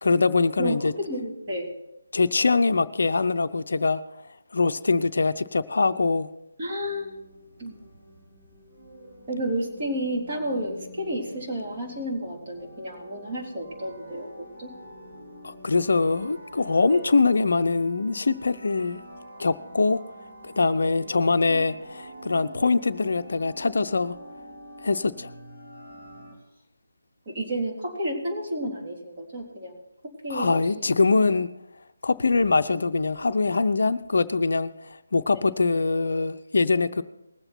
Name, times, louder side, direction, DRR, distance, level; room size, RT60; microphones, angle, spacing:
voice 1, 0.0-0.9 2.1-4.0 4.5-6.3 15.4-19.0 19.4-20.0 20.4-24.2 24.8-25.3 30.3-31.5 32.0-37.0, left 3 dB, 55° left, 0.6 m, -23 dB
voice 2, 1.0-1.7 6.6-7.2 7.6-7.7 9.3-14.3 14.6-14.7 16.9-17.0 22.6-22.7 27.3-29.8 30.2-30.9, right 1 dB, 35° right, 3.5 m, -31 dB
sound 1, 6.8-26.3, equal, 55° right, 3.2 m, -47 dB
20.0 x 7.8 x 4.4 m
figure-of-eight pair, 150°, 0 cm